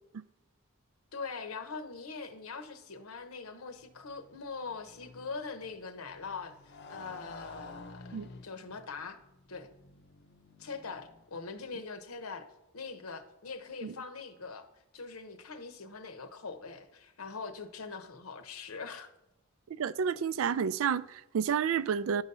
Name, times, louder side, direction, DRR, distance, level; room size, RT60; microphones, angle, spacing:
voice 1, 1.1-6.5 6.9-8.2 8.4-9.2 9.5-9.7 10.6-12.5 12.7-14.6 14.9-19.1, left 4 dB, 80° left, 0.9 m, -42 dB
Motorcycle, 3.5-11.7, left 3 dB, 50° left, 0.6 m, -52 dB
voice 2, 19.7-22.2, right 7 dB, 65° right, 0.3 m, -30 dB
11.0 x 4.0 x 5.4 m
head